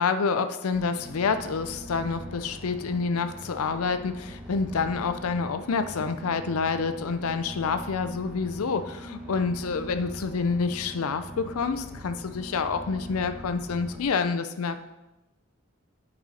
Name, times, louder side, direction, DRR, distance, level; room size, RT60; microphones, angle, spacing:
voice 1, 0.0-14.8, left 5 dB, 80° left, 9 dB, 0.5 m, -28 dB
sound 1, 0.7-14.0, equal, 5° right, 1.0 m, -42 dB
8.8 x 5.4 x 4.1 m, 0.98 s
head